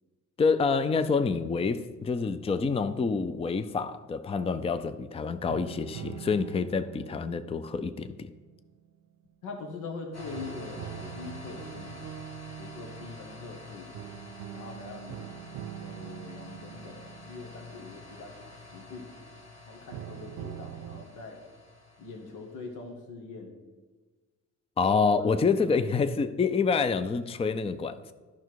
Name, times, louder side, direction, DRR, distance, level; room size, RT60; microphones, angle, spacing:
voice 1, 0.4-8.3 24.8-28.1, left 5 dB, 20° left, 0.4 m, -27 dB
sound 1, 2.9-4.1 5.5-9.5 10.3-19.1 19.9-21.1, right 12 dB, 75° right, 0.5 m, -44 dB
voice 2, 9.4-12.1 12.6-13.9 14.5-19.1 19.7-21.4 22.0-23.5 25.6-25.7, left 4 dB, 85° left, 1.5 m, -43 dB
sound 2, 10.1-22.7, left 3 dB, 60° left, 1.5 m, -48 dB
11.5 x 5.8 x 4.6 m
cardioid pair, 90°, 30 cm